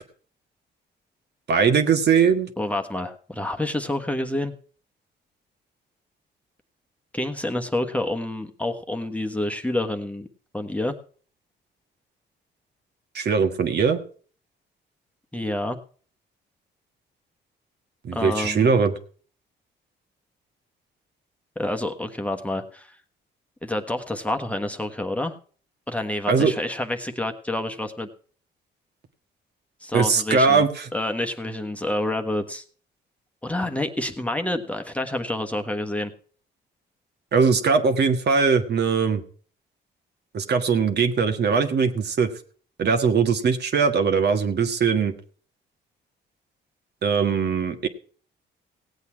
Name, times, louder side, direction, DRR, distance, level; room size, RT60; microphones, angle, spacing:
voice 1, 1.5-2.5 13.1-14.0 18.0-18.9 26.3-26.5 29.9-30.9 37.3-39.2 40.3-42.3 42.8-45.1 47.0-47.9, right 5 dB, 55° right, 6 dB, 1.7 m, -20 dB
voice 2, 2.6-4.5 7.1-10.3 10.5-10.9 15.3-15.8 18.1-18.7 21.6-22.9 23.6-25.4 25.9-28.1 29.8-30.6 30.9-32.6 33.4-36.1, left 1 dB, 5° left, 5 dB, 1.3 m, -28 dB
17.0 x 8.2 x 4.6 m, 0.43 s
cardioid pair, 90°, 20 cm